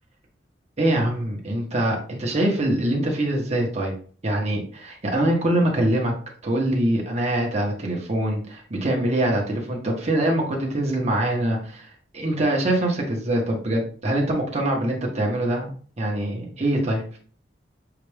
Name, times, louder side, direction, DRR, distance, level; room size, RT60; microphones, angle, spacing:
voice 1, 0.8-3.9 4.2-6.1 6.4-11.8 12.1-15.7 16.0-17.2, right 1 dB, 40° right, 0 dB, 1.0 m, -24 dB
5.7 x 2.5 x 3.3 m, 0.43 s
head